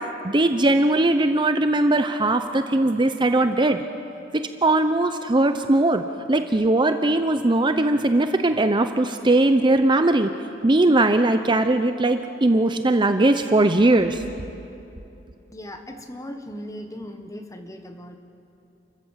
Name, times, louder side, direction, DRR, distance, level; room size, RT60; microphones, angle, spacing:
voice 1, 0.2-3.8 4.6-6.0 6.3-10.3 10.6-14.2, right 2 dB, 25° right, 8 dB, 0.7 m, -19 dB
voice 2, 15.5-18.2, equal, 20° left, 5 dB, 1.5 m, -38 dB
30.0 x 14.5 x 7.5 m, 2.9 s
head